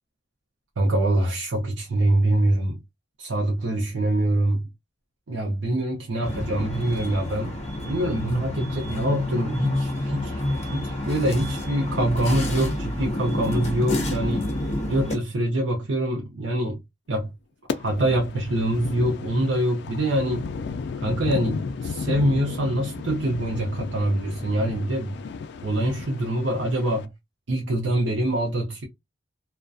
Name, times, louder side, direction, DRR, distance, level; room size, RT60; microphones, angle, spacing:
voice 1, 0.8-2.8 3.2-4.7 5.3-10.4 10.7-14.5 14.9-16.8 17.1-17.3 17.7-20.5 21.0-25.2 25.6-27.1 27.5-28.8, right 1 dB, 80° right, 0.6 m, -25 dB
sound 1, 6.2-15.1, left 1 dB, 40° left, 0.7 m, -29 dB
sound 2, 17.7-27.0, left 5 dB, 65° left, 0.3 m, -33 dB
2.4 x 2.1 x 2.5 m
head